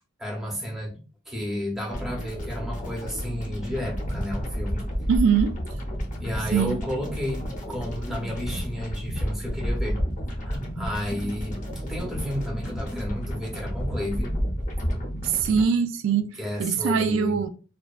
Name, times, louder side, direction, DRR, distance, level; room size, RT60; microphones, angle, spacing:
voice 1, 0.2-1.0 1.3-4.9 6.2-10.0 10.3-11.6 11.9-14.4 16.4-17.4, left 1 dB, ahead, 0.7 m, -32 dB
sound 1, 1.9-15.6, equal, 40° left, 0.6 m, -31 dB
voice 2, 5.1-5.5 6.5-6.7 15.2-17.5, right 6 dB, 75° right, 0.3 m, -23 dB
2.5 x 2.2 x 2.3 m
head